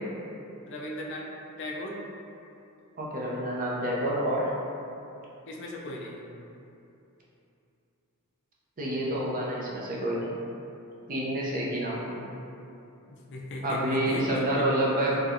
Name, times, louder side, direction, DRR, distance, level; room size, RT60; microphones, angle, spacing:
voice 1, 0.7-1.3 1.6-2.0 5.5-6.2 13.1-14.6, left 1 dB, 55° left, -2 dB, 0.4 m, -37 dB
voice 2, 3.0-4.5 8.8-10.3 11.1-12.3 13.6-15.2, right 1 dB, 40° right, -5 dB, 0.6 m, -28 dB
4.3 x 2.2 x 2.5 m, 2.8 s
head